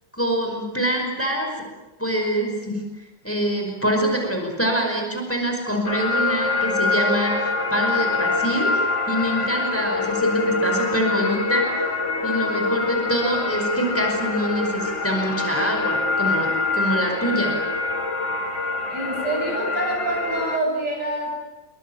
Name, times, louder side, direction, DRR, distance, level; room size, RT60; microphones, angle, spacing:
voice 1, 0.1-1.5 2.0-2.8 3.2-17.5, right 1 dB, 5° left, 1 dB, 5.2 m, -25 dB
sound 1, 5.9-20.6, left 3 dB, 40° left, 2.5 m, -24 dB
voice 2, 18.9-21.3, right 2 dB, 65° right, 0 dB, 8.8 m, -26 dB
27.0 x 24.0 x 8.8 m, 1.1 s
omnidirectional pair, 2.0 m